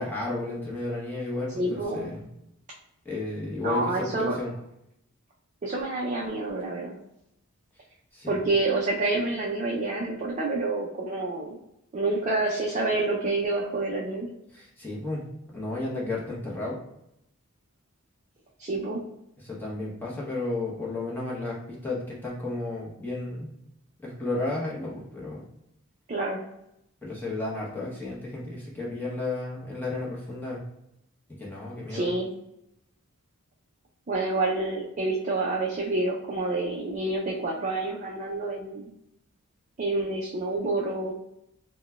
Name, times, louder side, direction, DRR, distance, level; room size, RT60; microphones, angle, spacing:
voice 1, 0.0-2.3 3.0-4.5 8.1-8.3 14.5-15.2 15.5-16.8 19.4-23.5 24.0-25.4 27.0-30.6 31.3-32.1, left 2 dB, 10° left, -5 dB, 0.8 m, -33 dB
voice 2, 1.6-2.1 3.6-4.4 5.6-7.0 8.3-11.6 11.9-14.3 18.6-19.0 26.1-26.4 31.9-32.3 34.1-38.9 39.8-41.1, right 2 dB, 35° right, -3 dB, 0.4 m, -28 dB
3.9 x 2.1 x 2.2 m, 0.81 s
head